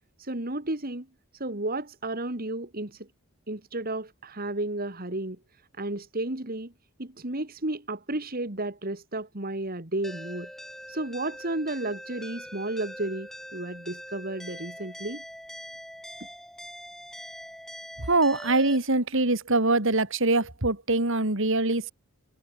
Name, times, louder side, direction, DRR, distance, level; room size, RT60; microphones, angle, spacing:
voice 1, 0.2-1.1 1.3-3.1 3.5-5.4 5.8-6.7 7.0-10.5 10.9-15.2, right 2 dB, 40° right, 2.6 m, -32 dB
sound 1, 10.0-18.8, equal, ahead, 5.0 m, -43 dB
voice 2, 18.1-21.9, right 2 dB, 60° right, 3.2 m, -23 dB
head